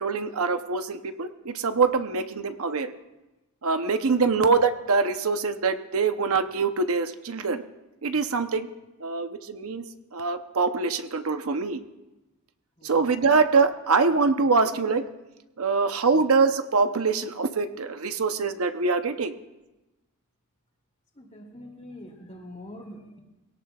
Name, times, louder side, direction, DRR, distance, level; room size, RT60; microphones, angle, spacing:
voice 1, 0.0-2.9 3.6-7.6 8.0-8.7 9.0-11.8 12.8-15.0 15.6-19.3, right 4 dB, 75° right, 9 dB, 0.8 m, -24 dB
voice 2, 21.2-23.2, left 1 dB, 30° left, 0 dB, 2.8 m, -44 dB
23.0 x 17.5 x 2.4 m, 1.0 s
head